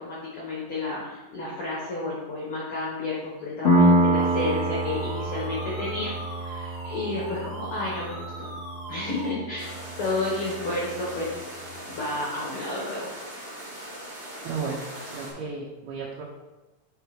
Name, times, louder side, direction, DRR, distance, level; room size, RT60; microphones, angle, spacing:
voice 1, 0.0-6.1 6.4-8.5 8.9-9.7 10.0-11.3 11.9-13.1, left 2 dB, 75° left, -6 dB, 1.2 m, -31 dB
Piano, 3.6-11.0, right 1 dB, 25° left, 1.7 m, -26 dB
sound 1, 4.1-9.3, right 1 dB, 55° right, 0.8 m, -41 dB
sound 2, 9.6-15.3, right 1 dB, 20° right, 1.5 m, -40 dB
voice 2, 14.4-16.2, right 5 dB, 80° right, -3 dB, 2.8 m, -34 dB
5.5 x 4.9 x 4.8 m, 1.1 s
omnidirectional pair, 4.5 m